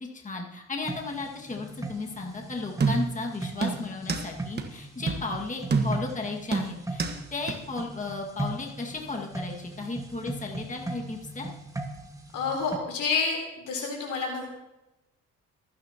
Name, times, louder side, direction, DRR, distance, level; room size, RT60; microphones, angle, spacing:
voice 1, 0.1-7.0 7.3-11.5, left 3 dB, 25° left, 0 dB, 2.0 m, -34 dB
sound 1, 0.8-12.8, right 2 dB, 10° right, 1.7 m, -39 dB
sound 2, 2.8-3.2 3.6-4.3 4.6-4.7 5.1-5.3 5.7-6.1 6.5-7.2 7.5-7.6, right 4 dB, 35° right, 1.4 m, -27 dB
voice 2, 12.3-14.5, left 4 dB, 85° left, 0 dB, 3.9 m, -29 dB
24.0 x 9.8 x 3.0 m, 0.97 s
cardioid pair, 90°, 30 cm